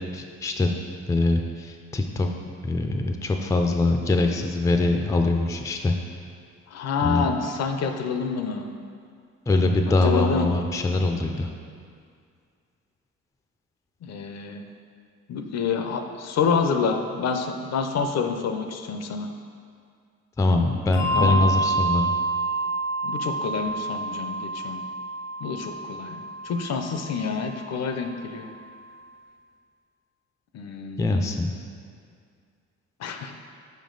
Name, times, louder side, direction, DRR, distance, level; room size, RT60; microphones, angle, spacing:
voice 1, 0.1-0.7 1.1-2.3 2.6-5.9 7.0-7.2 9.5-11.5 20.4-22.1 31.0-31.5, left 2 dB, 10° left, 4 dB, 0.4 m, -23 dB
voice 2, 6.7-8.7 10.0-10.5 14.0-14.6 15.3-19.3 21.1-21.4 23.0-24.8 25.4-28.5 30.5-31.6 33.0-33.3, left 5 dB, 60° left, 6 dB, 0.6 m, -28 dB
Bell, 20.9-27.8, right 2 dB, 90° left, 1.1 m, -28 dB
5.3 x 4.7 x 3.8 m, 2.2 s
cardioid pair, 90°, 30 cm